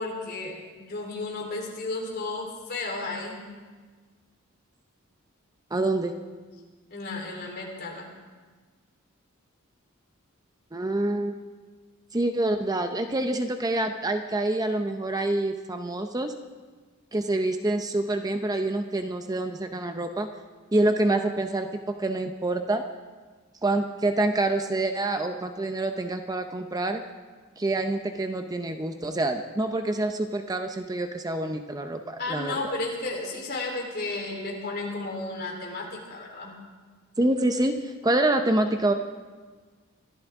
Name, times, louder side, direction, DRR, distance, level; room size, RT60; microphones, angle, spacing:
voice 1, 0.0-3.4 6.9-8.1 32.2-36.5, left 2 dB, 50° left, -1 dB, 3.5 m, -33 dB
voice 2, 5.7-6.1 10.7-11.3 12.1-16.3 17.1-20.3 20.7-22.8 23.6-27.0 27.6-32.7 37.2-38.9, right 2 dB, 20° right, 6 dB, 0.6 m, -26 dB
24.5 x 13.5 x 3.6 m, 1.4 s
head